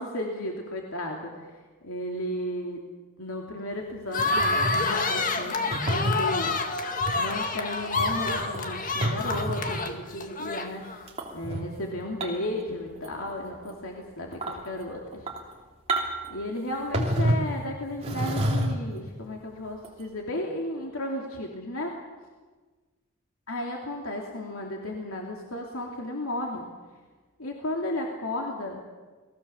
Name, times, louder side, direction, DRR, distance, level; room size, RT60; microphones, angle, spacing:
voice 1, 0.0-1.5 1.8-2.8 3.2-6.6 7.1-10.8 11.3-15.3 16.3-21.9 23.5-26.7 27.4-28.8, left 1 dB, 90° left, 0 dB, 3.0 m, -34 dB
sound 1, 4.1-11.0, left 3 dB, 40° left, 2.0 m, -28 dB
sound 2, 4.2-4.9 5.7-6.2 7.0-7.2 7.8-9.9 11.1-11.6 12.2-12.6 12.9-13.3 13.7-13.8 14.3-14.6 15.1-15.5 15.9-16.3 16.9-17.5 18.0-19.0 19.8-20.0, right 1 dB, 30° right, 3.0 m, -29 dB
29.5 x 20.0 x 7.2 m, 1.3 s
head